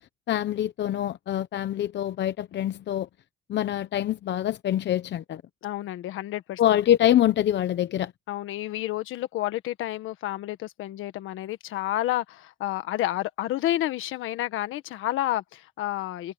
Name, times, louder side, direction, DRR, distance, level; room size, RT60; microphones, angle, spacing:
voice 1, 0.3-3.1 3.5-5.4 6.6-8.1, left 11 dB, 65° left, 0.8 m, -25 dB
voice 2, 5.6-6.6 8.3-16.3, left 14 dB, 90° left, 1.5 m, -30 dB
cardioid pair, 90°, 20 cm